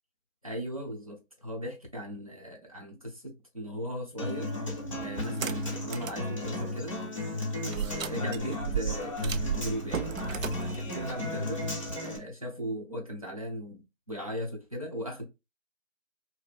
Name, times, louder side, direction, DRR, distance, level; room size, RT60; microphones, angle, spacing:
voice 1, 0.4-7.0 7.6-10.1 10.6-11.7 12.0-15.2, equal, 30° right, 0.5 m, -38 dB
Human voice / Acoustic guitar, 4.2-12.2, left 2 dB, 25° left, 0.5 m, -35 dB
sound 1, 5.2-6.2 6.7-6.8 7.7-12.0, right 8 dB, 85° right, 0.5 m, -35 dB
2.6 x 2.4 x 2.3 m
figure-of-eight pair, 155°, 39 cm